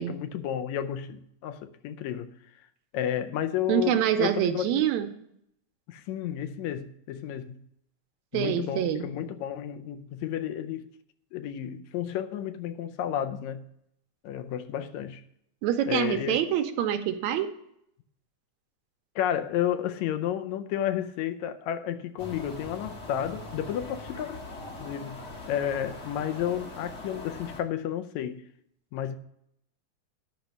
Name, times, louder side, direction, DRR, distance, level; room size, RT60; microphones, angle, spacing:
voice 1, 0.1-2.3 2.9-4.8 5.9-7.6 8.3-10.9 11.3-13.7 14.2-15.2 15.9-16.4 19.2-24.4 24.8-28.4 28.9-29.2, left 10 dB, 80° left, 1.9 m, -32 dB
voice 2, 3.7-5.1 8.3-9.1 15.6-17.5, right 10 dB, 80° right, 2.1 m, -26 dB
sound 1, 22.2-27.6, left 2 dB, 45° left, 0.9 m, -41 dB
10.5 x 6.0 x 6.6 m
omnidirectional pair, 3.3 m